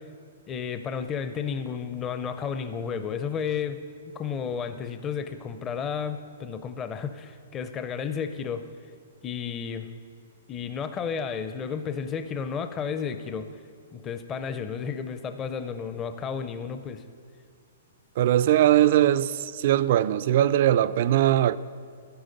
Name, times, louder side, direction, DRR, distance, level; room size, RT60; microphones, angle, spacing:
voice 1, 0.5-3.8 4.1-8.6 9.2-9.9 10.5-13.5 13.9-17.0, left 6 dB, 20° left, 0.5 m, -32 dB
voice 2, 18.2-21.6, right 12 dB, 50° right, 0.3 m, -21 dB
11.5 x 10.5 x 5.2 m
hypercardioid pair, 160°, 0 cm